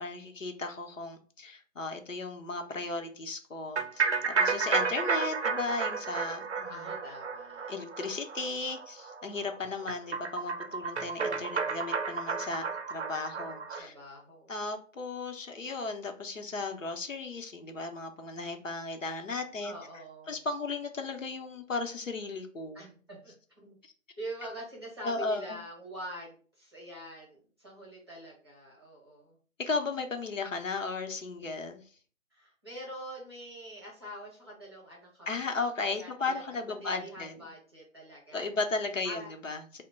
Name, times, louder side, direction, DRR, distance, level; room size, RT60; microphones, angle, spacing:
voice 1, 0.0-6.8 7.7-13.9 14.5-19.7 20.3-22.8 23.8-23.9 25.0-25.6 29.6-31.8 35.3-37.3 38.3-39.8, left 3 dB, 70° left, 5 dB, 0.8 m, -35 dB
sound 1, 3.8-13.8, right 5 dB, 55° right, 0.5 m, -32 dB
voice 2, 6.7-7.7 13.8-14.6 19.6-20.4 22.7-23.8 24.2-29.4 32.3-38.4 39.0-39.3, right 1 dB, 20° right, -4 dB, 0.8 m, -45 dB
2.9 x 2.1 x 4.1 m, 0.41 s
figure-of-eight pair, 160°, 40 cm